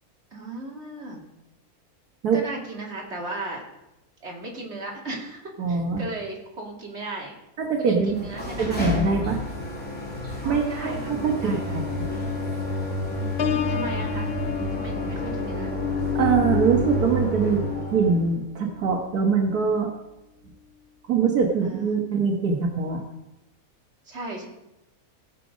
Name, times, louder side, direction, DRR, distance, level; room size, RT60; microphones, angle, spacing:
voice 1, 0.3-1.3 2.3-3.6 4.2-7.4 7.8-8.8 10.4-11.8 13.1-14.3 14.7-15.7 21.6-22.0 24.1-24.5, right 2 dB, 45° right, -2 dB, 2.7 m, -36 dB
voice 2, 5.6-6.0 7.6-8.2 8.6-9.4 10.4-12.1 16.2-17.6 17.9-19.9 21.1-23.0, right 5 dB, 85° right, 2 dB, 1.9 m, -23 dB
sound 1, 8.0-18.3, left 2 dB, 5° left, 3.0 m, -29 dB
Piano, 13.4-19.0 19.5-19.8, left 9 dB, 85° left, 0.5 m, -35 dB
17.0 x 7.6 x 5.2 m, 0.93 s
omnidirectional pair, 1.6 m